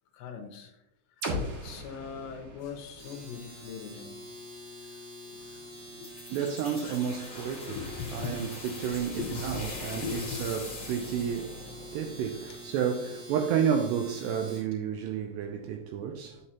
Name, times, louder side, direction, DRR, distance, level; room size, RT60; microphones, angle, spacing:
voice 1, 0.1-0.8 1.1-4.2 4.8-6.2 7.6-10.4 12.5-12.6, left 7 dB, 75° left, 2.9 m, -41 dB
sound 1, 1.2-5.1, equal, 65° right, 1.0 m, -39 dB
Domestic sounds home sounds, 2.9-14.7, equal, 30° right, 3.6 m, -46 dB
sound 2, 6.0-12.6, left 2 dB, 60° left, 0.8 m, -42 dB
voice 2, 6.3-7.8 8.1-8.5 8.8-11.6 11.9-16.4, right 8 dB, 80° right, 2.5 m, -31 dB
9.9 x 7.4 x 2.9 m
omnidirectional pair, 5.4 m